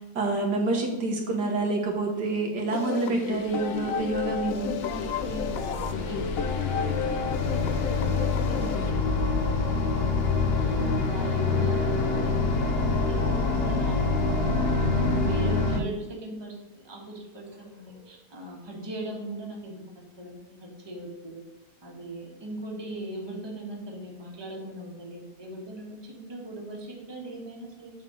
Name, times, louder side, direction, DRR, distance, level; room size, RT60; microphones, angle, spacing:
voice 1, 0.2-4.8 11.6-11.7 15.4-15.9, right 2 dB, 75° right, 1 dB, 1.9 m, -28 dB
sound 1, 2.7-8.9, left 7 dB, 70° left, 0.8 m, -32 dB
sound 2, 3.7-15.8, left 3 dB, 45° left, 0.9 m, -26 dB
voice 2, 4.8-6.9 7.1-9.8 10.5-14.2 14.6-19.8 20.2-21.4 21.8-27.9, right 1 dB, 15° right, -1 dB, 1.3 m, -40 dB
7.3 x 3.6 x 6.3 m, 1.1 s
omnidirectional pair, 1.8 m